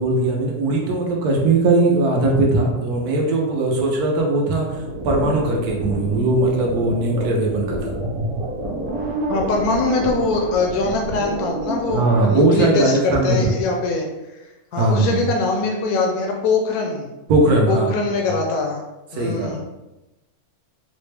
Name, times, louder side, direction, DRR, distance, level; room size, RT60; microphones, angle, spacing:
voice 1, 0.0-4.7 5.0-7.9 11.9-13.5 14.7-15.2 17.3-18.0 19.1-19.6, right 2 dB, 85° right, 0 dB, 1.2 m, -19 dB
sound 1, 4.7-12.3, right 1 dB, 60° right, 1.3 m, -28 dB
voice 2, 9.3-14.1 14.7-17.1 17.7-18.8 19.1-19.6, left 3 dB, 75° left, 1 dB, 1.0 m, -22 dB
4.1 x 2.1 x 3.2 m, 1.0 s
omnidirectional pair, 1.6 m